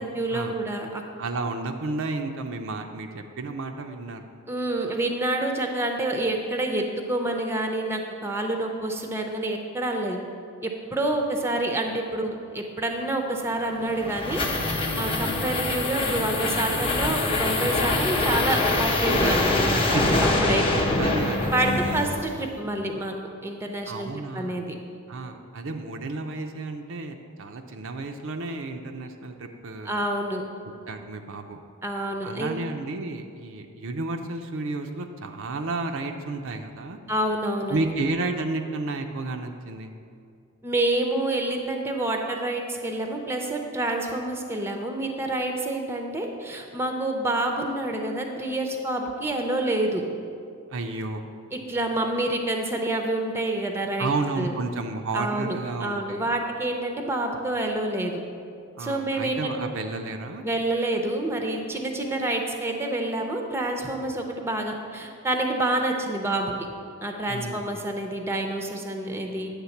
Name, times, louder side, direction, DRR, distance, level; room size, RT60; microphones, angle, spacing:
voice 1, 0.0-1.0 4.5-10.2 10.6-14.4 15.0-20.8 21.5-23.1 23.4-24.6 29.8-30.4 31.8-32.6 37.1-38.0 40.6-50.0 51.5-54.5 55.1-58.2 58.8-59.6 60.4-66.5 67.0-69.5, right 1 dB, 10° right, 3 dB, 0.6 m, -28 dB
voice 2, 1.2-4.3 19.8-20.2 21.0-22.1 23.9-24.7 25.1-30.0 30.6-31.6 32.2-37.0 37.7-39.9 50.7-51.3 54.0-56.3 58.8-60.4 67.3-67.9, right 3 dB, 60° right, 5 dB, 0.5 m, -32 dB
sound 1, 13.7-22.5, left 2 dB, 25° left, 0.8 m, -24 dB
9.7 x 3.6 x 7.1 m, 2.3 s
head